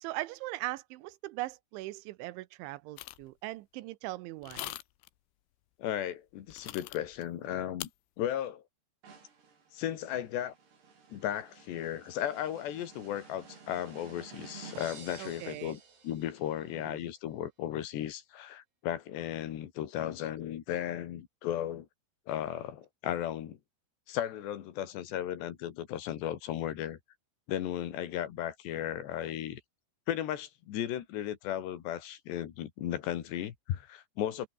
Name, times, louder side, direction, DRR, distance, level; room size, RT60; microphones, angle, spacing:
voice 1, 0.0-4.8 15.2-15.8 16.8-17.0, right 18 dB, 80° right, 3.2 m, -40 dB
sound 1, 3.0-3.3 4.4-5.1 6.5-7.2 7.8-7.9, left 17 dB, 85° left, 3.3 m, -41 dB
voice 2, 5.8-7.9 8.2-8.6 9.7-10.5 11.1-15.8 16.0-21.9 22.3-23.6 24.1-27.0 27.5-29.6 30.1-34.5, left 11 dB, 70° left, 4.0 m, -35 dB
Long Snare Drum Roll with Cymbal Crash, 9.0-16.6, right 5 dB, 60° right, 7.7 m, -52 dB
omnidirectional pair, 5.4 m